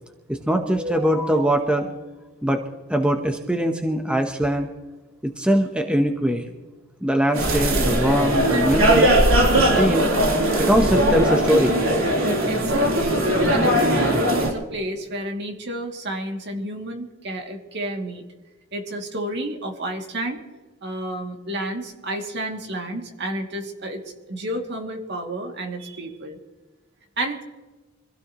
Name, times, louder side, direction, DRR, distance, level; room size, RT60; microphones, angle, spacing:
voice 1, 0.3-1.9 2.4-2.6 2.9-4.7 5.2-6.5 7.0-9.1 9.6-10.1 10.6-11.9, equal, 5° right, 4 dB, 1.0 m, -22 dB
sound 1, 7.3-14.5, right 1 dB, 90° right, 3.7 m, -19 dB
voice 2, 12.5-13.2 13.5-18.2 18.7-20.4 20.8-24.0 24.3-26.4 27.2-27.4, right 1 dB, 55° right, 2 dB, 2.6 m, -30 dB
25.5 x 16.5 x 3.1 m, 1.3 s
head